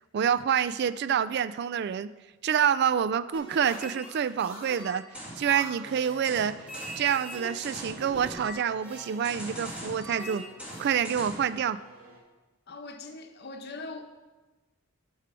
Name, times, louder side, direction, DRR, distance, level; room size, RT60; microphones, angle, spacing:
voice 1, 0.1-2.1 2.4-5.1 5.4-6.6 7.0-10.4 10.8-11.8, right 8 dB, 55° right, 0.3 m, -27 dB
sound 1, 3.3-11.5, right 1 dB, 5° right, 2.2 m, -41 dB
sound 2, 5.3-12.2, equal, 70° right, 2.7 m, -52 dB
voice 2, 12.7-14.0, left 3 dB, 55° left, 0.9 m, -41 dB
12.5 x 4.7 x 6.1 m
head